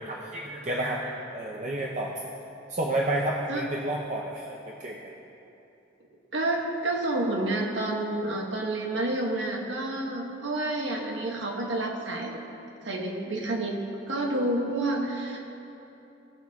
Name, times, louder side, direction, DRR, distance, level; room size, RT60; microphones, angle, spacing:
voice 1, 0.0-2.1 2.7-5.1, right 1 dB, 35° right, -2 dB, 0.6 m, -30 dB
voice 2, 6.3-12.4 12.8-13.8 14.1-15.4, right 2 dB, 75° right, 0 dB, 1.3 m, -29 dB
18.0 x 6.2 x 3.5 m, 2.9 s
head